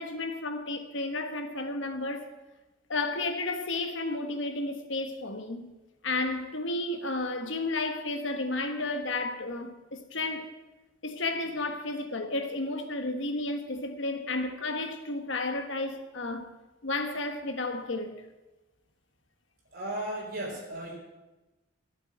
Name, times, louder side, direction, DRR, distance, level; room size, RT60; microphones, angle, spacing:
voice 1, 0.0-2.3 2.9-5.7 6.0-10.5 11.0-16.5 16.8-18.2, left 2 dB, 65° left, 1.3 m, -32 dB
voice 2, 19.7-21.0, right 1 dB, 45° right, 4.6 m, -35 dB
12.0 x 8.0 x 9.1 m
head